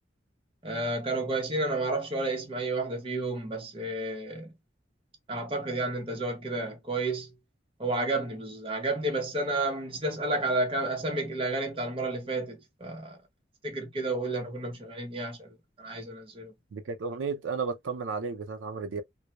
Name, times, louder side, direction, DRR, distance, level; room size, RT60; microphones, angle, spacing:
voice 1, 0.6-4.5 5.3-7.3 7.8-13.2 13.6-16.5, right 2 dB, 30° right, 0.7 m, -31 dB
voice 2, 16.7-19.0, right 5 dB, 90° right, 0.5 m, -33 dB
2.2 x 2.0 x 2.8 m
head